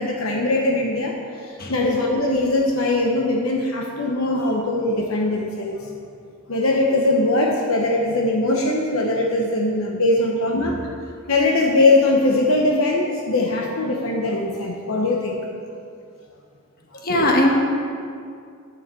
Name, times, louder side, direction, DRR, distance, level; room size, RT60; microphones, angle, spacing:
voice 1, 0.0-5.9 6.5-10.8 11.3-15.4 16.9-17.3, left 2 dB, 70° left, 0 dB, 1.0 m, -21 dB
voice 2, 17.0-17.5, left 1 dB, 45° left, 0 dB, 1.5 m, -19 dB
9.3 x 7.2 x 6.9 m, 2.3 s
head